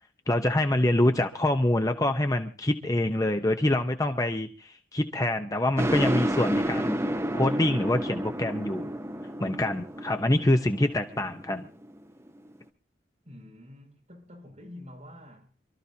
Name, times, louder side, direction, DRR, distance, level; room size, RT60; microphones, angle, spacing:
voice 1, 0.3-7.0 7.3-8.9 9.4-11.7, left 1 dB, 20° left, 0.8 m, -25 dB
sound 1, 5.8-12.5, right 1 dB, 15° right, 0.9 m, -30 dB
voice 2, 13.2-15.5, left 1 dB, 35° right, 5.9 m, -47 dB
28.0 x 13.5 x 2.8 m
head